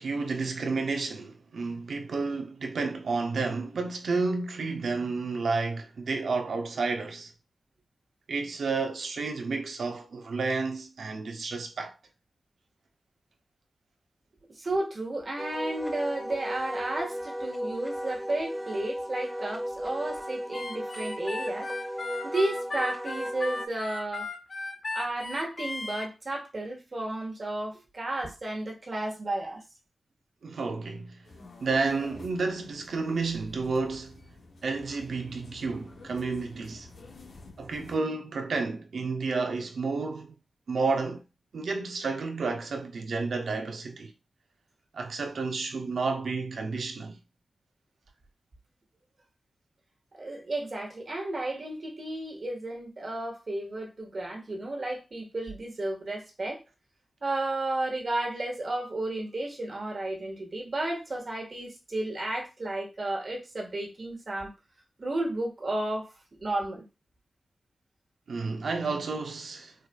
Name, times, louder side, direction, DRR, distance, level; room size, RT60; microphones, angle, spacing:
voice 1, 0.0-7.3 8.3-12.0 30.4-31.2 31.6-34.2 34.6-36.9 37.6-40.3 40.7-41.2 41.5-44.1 44.9-47.2 68.3-69.7, right 4 dB, 75° right, 0.6 m, -31 dB
voice 2, 14.5-21.7 22.2-24.3 24.9-29.6 50.1-56.6 57.2-64.5 65.0-66.1 66.4-66.8, right 2 dB, 50° right, 1.4 m, -33 dB
Wind instrument woodwind instrument, 15.4-23.7, equal, 5° right, 0.3 m, -35 dB
Harmonica, 20.5-26.1, left 3 dB, 50° left, 0.8 m, -36 dB
sound 1, 31.2-38.0, left 3 dB, 90° left, 1.0 m, -50 dB
4.5 x 2.5 x 2.3 m
cardioid pair, 75°, 0 cm